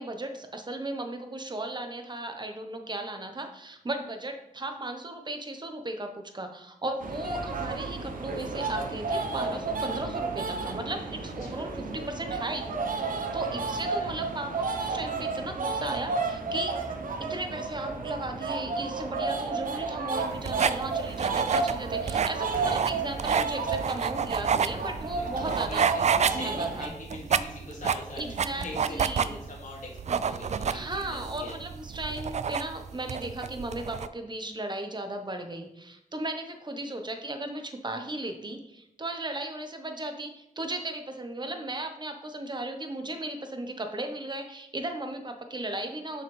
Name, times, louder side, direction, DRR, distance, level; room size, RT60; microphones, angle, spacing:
voice 1, 0.0-12.7 12.9-16.7 17.2-25.8 26.3-26.9 28.2-29.5 30.1-30.2 30.7-46.2, right 2 dB, 30° right, 5 dB, 1.2 m, -36 dB
sound 1, 7.0-26.9, right 4 dB, 70° right, 0.9 m, -32 dB
voice 2, 11.3-11.6 13.4-13.5 13.9-14.1 25.2-25.8 26.1-31.6, left 2 dB, 60° left, -4 dB, 2.3 m, -42 dB
sound 2, 20.2-34.1, right 7 dB, 50° right, 0.4 m, -29 dB
7.0 x 5.6 x 3.4 m, 0.83 s
cardioid pair, 60°, 14 cm